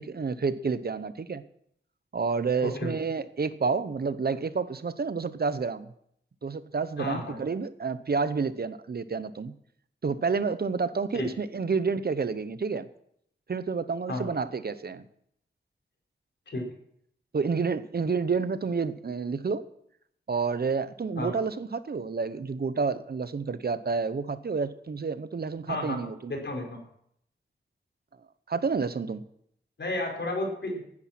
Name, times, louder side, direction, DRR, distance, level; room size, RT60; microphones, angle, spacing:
voice 1, 0.0-1.4 2.1-5.9 6.4-9.5 10.0-12.9 13.5-15.0 17.3-19.7 20.3-26.3 28.5-29.2, right 5 dB, 55° right, 13 dB, 0.8 m, -29 dB
voice 2, 2.6-2.9 7.0-7.4 11.1-11.3 14.1-14.3 16.5-16.6 21.2-21.3 25.7-26.0 26.3-26.8 29.8-30.8, left 2 dB, 65° left, 0 dB, 5.1 m, -32 dB
16.5 x 9.8 x 6.0 m, 0.71 s
wide cardioid pair, 105°, 19 cm